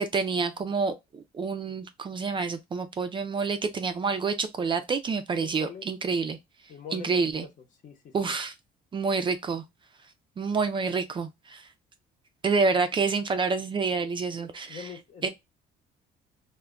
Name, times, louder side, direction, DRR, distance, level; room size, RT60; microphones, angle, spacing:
voice 1, 0.0-6.4 6.9-7.5 8.1-8.5 8.9-9.6 10.4-11.7 12.4-14.8 15.2-15.3, right 4 dB, 30° right, 0.4 m, -28 dB
voice 2, 5.4-5.9 6.7-7.5 7.8-8.3 14.7-15.3, left 6 dB, 45° left, 0.7 m, -43 dB
2.2 x 2.1 x 3.5 m
cardioid pair, 110°, 17 cm